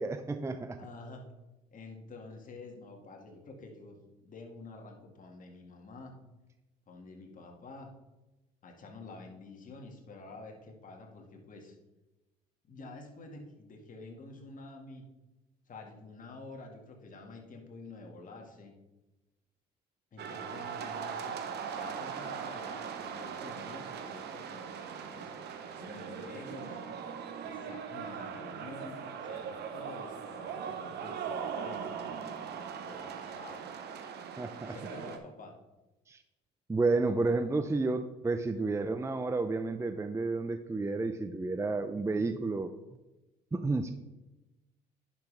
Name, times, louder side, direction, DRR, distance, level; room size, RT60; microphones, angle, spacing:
voice 1, 0.0-0.8 34.4-34.8 36.1-36.2 36.7-42.7 43.5-43.9, right 3 dB, 15° right, 9 dB, 0.5 m, -31 dB
voice 2, 0.8-1.3 1.7-6.2 6.9-7.9 8.6-11.8 12.7-15.0 15.7-18.8 20.1-25.3 25.8-26.8 27.4-31.9 32.4-33.7 34.7-35.5, left 3 dB, 45° left, 1 dB, 2.0 m, -49 dB
sound 1, 20.2-35.2, right 7 dB, 65° right, 1.0 m, -40 dB
10.5 x 5.8 x 3.4 m, 1.0 s
hypercardioid pair, 65°, 19 cm